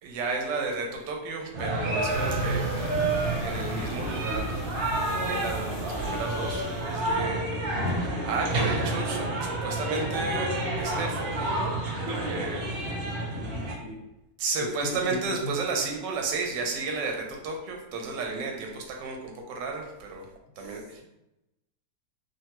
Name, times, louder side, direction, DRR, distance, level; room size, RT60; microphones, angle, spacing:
voice 1, 0.0-2.8 3.4-4.6 5.2-7.6 7.9-11.7 12.1-12.7 14.4-20.3 20.6-21.0, right 4 dB, 85° right, 1 dB, 1.3 m, -33 dB
sound 1, 1.5-13.7, right 1 dB, 65° right, 0.7 m, -29 dB
sound 2, 2.1-7.3, right 3 dB, 65° left, 1.4 m, -36 dB
voice 2, 13.3-14.0 14.6-15.6 20.6-20.7, left 3 dB, 30° left, -11 dB, 1.2 m, -37 dB
3.2 x 2.2 x 2.8 m, 0.91 s
omnidirectional pair, 1.9 m